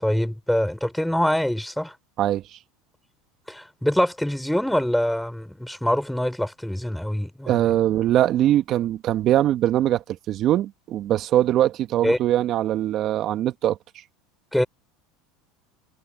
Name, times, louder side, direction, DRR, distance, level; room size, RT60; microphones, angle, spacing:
voice 1, 0.0-1.9 3.5-7.5 12.0-12.2 14.5-14.6, equal, ahead, 6.2 m, -24 dB
voice 2, 7.5-13.8, right 12 dB, 50° right, 2.1 m, -22 dB
hypercardioid pair, 95°, 0 cm